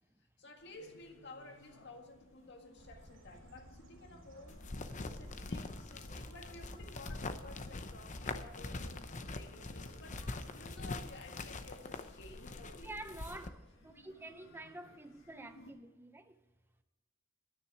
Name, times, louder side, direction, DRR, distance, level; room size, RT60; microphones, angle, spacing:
voice 1, 0.4-4.6 5.0-10.2 10.5-12.9, left 2 dB, 55° left, 1.7 m, -54 dB
sound 1, 0.6-15.7, left 1 dB, 80° left, 1.9 m, -62 dB
Bird, 2.8-10.9, equal, 70° right, 2.6 m, -57 dB
sound 2, 4.5-13.5, left 2 dB, 35° left, 0.7 m, -44 dB
voice 2, 12.8-13.6 13.8-16.4, right 2 dB, 10° right, 0.5 m, -48 dB
10.0 x 9.8 x 6.0 m
head